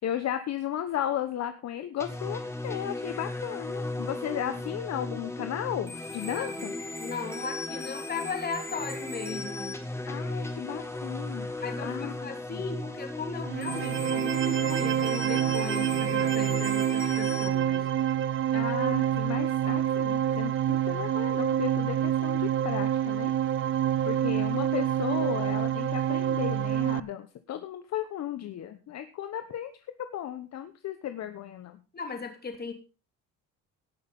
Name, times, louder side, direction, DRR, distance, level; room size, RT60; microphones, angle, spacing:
voice 1, 0.0-6.7 10.1-12.6 18.5-23.3 24.0-29.7 30.0-31.8, left 11 dB, 50° left, 9 dB, 1.1 m, -35 dB
sound 1, 2.0-17.5, left 2 dB, 10° left, 2.2 m, -36 dB
voice 2, 6.3-9.8 11.6-17.9 31.9-32.7, left 5 dB, 30° left, 5 dB, 2.9 m, -37 dB
sound 2, 13.4-27.0, right 10 dB, 35° right, 0.5 m, -27 dB
18.0 x 6.5 x 5.5 m, 0.33 s
cardioid pair, 135°, 34 cm